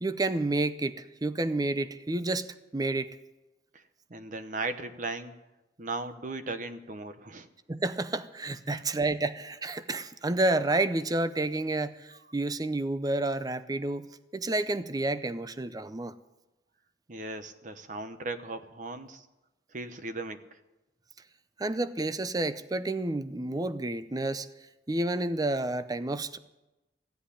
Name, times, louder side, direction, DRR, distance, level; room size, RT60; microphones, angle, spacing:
voice 1, 0.0-3.1 7.7-14.1 14.3-16.1 21.6-24.5 24.9-26.4, right 2 dB, 20° right, 13 dB, 0.6 m, -30 dB
voice 2, 4.1-5.3 5.8-7.5 8.7-8.8 17.1-19.3 19.7-20.6, right 2 dB, 45° right, 10 dB, 1.0 m, -37 dB
15.5 x 8.0 x 10.0 m, 1.0 s
head